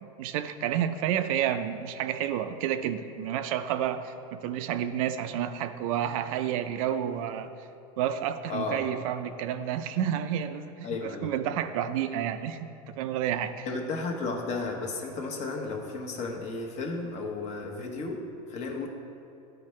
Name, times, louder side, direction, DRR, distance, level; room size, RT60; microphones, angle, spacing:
voice 1, 0.0-7.5 8.0-13.7, right 10 dB, 70° right, 10 dB, 0.4 m, -30 dB
voice 2, 8.5-8.8 10.8-11.3 13.6-18.9, left 3 dB, 40° left, 2 dB, 0.9 m, -33 dB
11.0 x 4.6 x 3.2 m, 2.7 s
supercardioid pair, 140°, 18 cm